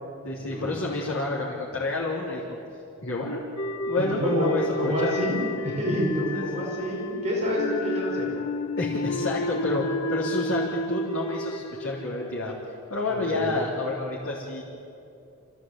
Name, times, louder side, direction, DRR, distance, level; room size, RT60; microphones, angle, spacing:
voice 1, 0.2-2.6 3.0-3.4 3.9-5.3 6.1-6.7 8.7-12.6 12.9-14.6, left 2 dB, 90° left, -5 dB, 3.6 m, -29 dB
sound 1, 3.6-12.8, left 1 dB, 70° left, 1.2 m, -31 dB
voice 2, 4.1-8.3 13.1-13.5, equal, 30° right, -3 dB, 5.3 m, -28 dB
27.0 x 16.0 x 9.2 m, 2.7 s
head